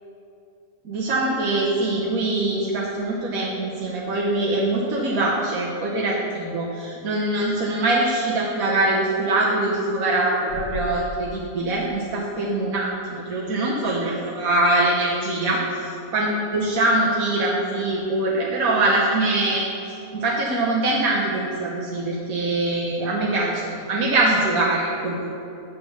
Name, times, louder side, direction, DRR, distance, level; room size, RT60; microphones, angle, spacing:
voice 1, 0.8-15.6 16.1-19.7 20.1-25.2, right 2 dB, 65° right, -4 dB, 1.3 m, -23 dB
10.0 x 4.1 x 6.9 m, 2.7 s
omnidirectional pair, 1.7 m